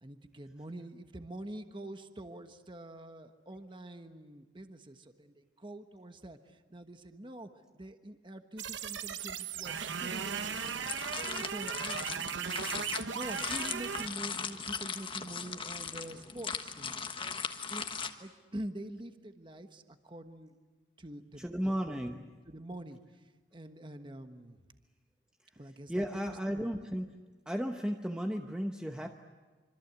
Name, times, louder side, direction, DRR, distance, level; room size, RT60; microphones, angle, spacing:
voice 1, 0.0-20.5 21.0-24.7 25.5-26.7, right 1 dB, 25° right, 7 dB, 1.3 m, -46 dB
sound 1, 8.6-14.1, right 7 dB, 80° right, 1.0 m, -37 dB
Mac n Cheese being stirred, 10.1-18.1, left 6 dB, 30° left, 1.3 m, -39 dB
voice 2, 21.4-22.2 25.9-27.2 27.5-29.2, equal, 5° right, 3 dB, 0.9 m, -34 dB
26.5 x 25.0 x 8.2 m, 1.3 s
head